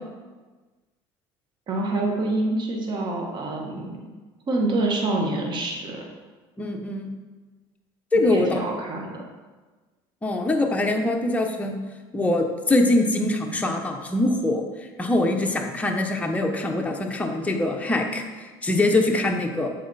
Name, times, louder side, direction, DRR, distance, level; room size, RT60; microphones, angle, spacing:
voice 1, 1.7-4.1 4.5-6.0 8.2-9.2, right 2 dB, 40° right, 0 dB, 1.1 m, -26 dB
voice 2, 6.6-7.1 8.1-8.6 10.2-11.8 12.1-14.6 15.0-19.7, left 2 dB, 10° left, 2 dB, 0.8 m, -23 dB
7.3 x 4.0 x 4.0 m, 1.3 s
supercardioid pair, 100°, 11 cm